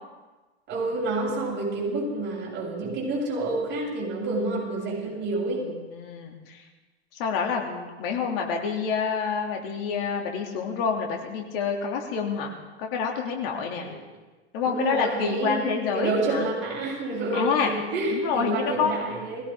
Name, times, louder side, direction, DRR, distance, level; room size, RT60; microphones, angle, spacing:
voice 1, 0.7-5.7 13.8-14.0 14.6-19.4, right 2 dB, 35° right, -3 dB, 7.7 m, -28 dB
voice 2, 5.6-6.6 7.1-12.5 12.8-13.9 14.5-16.5 17.3-17.7 18.1-18.9, left 6 dB, 55° left, 1 dB, 3.2 m, -28 dB
21.5 x 16.5 x 3.9 m, 1.2 s
hypercardioid pair, 100°, 34 cm